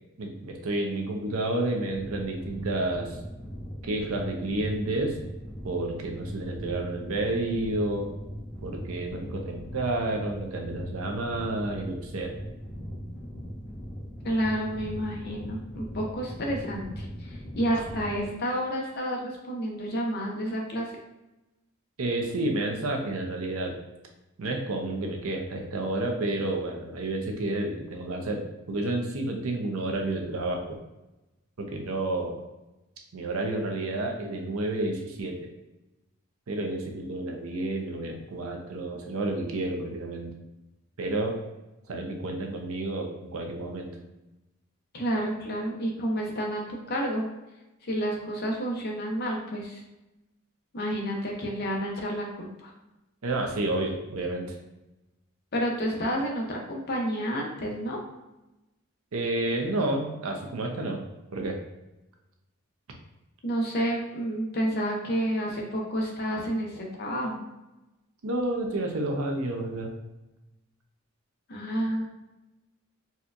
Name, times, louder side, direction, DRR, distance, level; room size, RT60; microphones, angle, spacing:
voice 1, 0.2-3.2 3.8-5.2 5.6-8.1 8.6-12.3 22.0-23.8 24.4-30.8 31.6-32.4 33.1-35.4 36.5-40.3 41.0-41.4 41.9-43.9 53.2-54.5 59.1-61.0 61.3-61.6 68.2-69.9, right 2 dB, 90° right, 2 dB, 0.6 m, -30 dB
sound 1, 1.9-18.3, equal, 5° left, 0.5 m, -40 dB
voice 2, 14.2-20.9 44.9-46.6 46.9-47.3 47.8-49.8 50.7-52.7 55.5-58.0 63.4-67.5 71.5-72.0, equal, 50° left, -1 dB, 0.7 m, -30 dB
4.2 x 2.3 x 2.5 m, 0.99 s
head